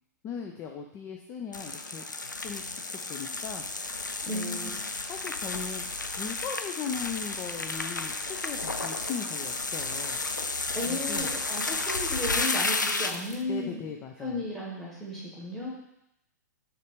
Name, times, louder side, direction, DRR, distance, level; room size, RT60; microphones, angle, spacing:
voice 1, 0.2-3.6 4.3-4.7 5.1-5.9 6.2-10.2 10.9-11.3 13.5-14.5, left 7 dB, 25° left, 3 dB, 0.5 m, -39 dB
sound 1, 1.5-13.4, left 3 dB, 80° left, 0.5 m, -32 dB
voice 2, 4.3-4.8 10.7-13.9 14.2-15.7, left 1 dB, 5° left, -5 dB, 2.0 m, -34 dB
6.6 x 3.2 x 5.0 m, 0.83 s
figure-of-eight pair, 110°, 10 cm